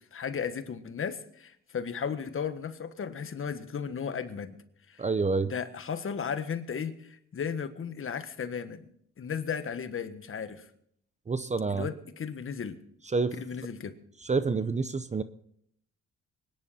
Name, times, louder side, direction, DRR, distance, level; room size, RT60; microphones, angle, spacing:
voice 1, 0.1-4.5 4.9-5.0 5.4-8.8 9.2-10.7 11.7-12.8 13.4-13.9, left 7 dB, 45° left, 10 dB, 1.5 m, -35 dB
voice 2, 5.0-5.5 11.3-11.9 13.1-13.3 14.2-15.2, right 4 dB, 25° right, 13 dB, 0.7 m, -28 dB
24.5 x 10.5 x 4.3 m, 0.68 s
cardioid pair, 90°, 30 cm